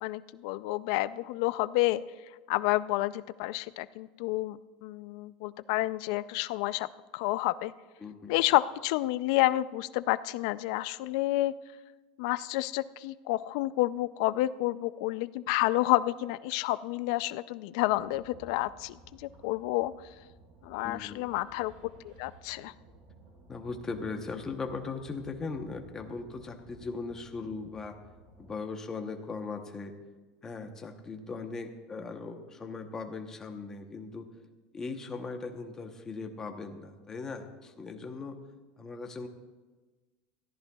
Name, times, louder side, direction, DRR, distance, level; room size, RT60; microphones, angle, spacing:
voice 1, 0.0-2.0 2.5-6.9 7.1-7.7 8.3-11.5 12.2-19.9 20.6-21.7 22.0-22.7, left 17 dB, 55° left, 15 dB, 0.4 m, -29 dB
voice 2, 8.0-8.4 20.8-21.3 23.5-28.0 28.4-30.0 30.4-34.3 34.7-38.4 38.8-39.3, left 4 dB, 15° left, 5 dB, 0.9 m, -39 dB
sound 1, 17.9-28.5, right 3 dB, 40° right, 4.8 m, -56 dB
21.5 x 14.5 x 2.3 m, 1.3 s
supercardioid pair, 175°, 4 cm